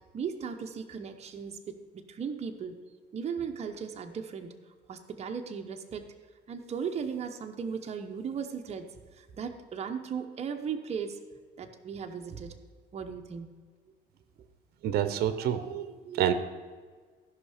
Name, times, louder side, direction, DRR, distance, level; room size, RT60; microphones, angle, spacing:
voice 1, 0.1-1.6 1.9-2.8 3.1-4.5 4.9-6.1 6.5-11.2 11.6-12.6 12.9-13.5, right 6 dB, 40° right, 5 dB, 0.9 m, -37 dB
voice 2, 14.8-16.3, right 10 dB, 70° right, 11 dB, 0.7 m, -28 dB
14.5 x 5.6 x 5.0 m, 1.5 s
cardioid pair, 110°, 17 cm